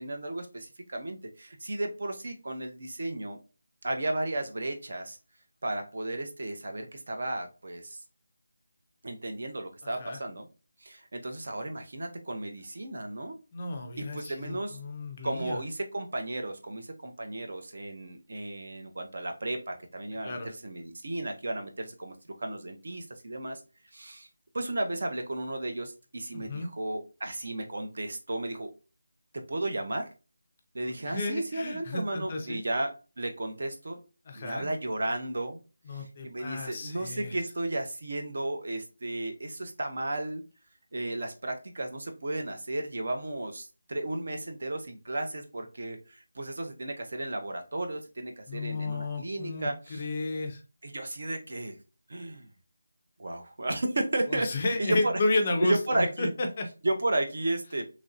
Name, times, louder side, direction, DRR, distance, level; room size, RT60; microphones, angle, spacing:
voice 1, 0.0-3.4 3.8-5.2 5.6-8.0 9.0-10.5 10.8-13.4 14.0-14.8 15.2-23.6 23.9-24.3 24.5-28.7 29.3-30.1 30.7-34.0 34.3-35.6 35.9-40.4 40.9-50.0 50.8-51.8 52.1-52.5 53.2-54.5 54.8-55.2 55.6-56.3 56.8-57.8, right 1 dB, 50° right, 5 dB, 0.6 m, -34 dB
voice 2, 9.8-10.2 13.5-15.6 20.2-20.5 26.3-26.7 31.1-32.6 34.3-34.7 35.9-37.4 48.5-50.6 54.3-56.7, left 2 dB, 25° left, 4 dB, 0.4 m, -32 dB
3.0 x 2.6 x 2.4 m, 0.32 s
figure-of-eight pair, 175°, 0 cm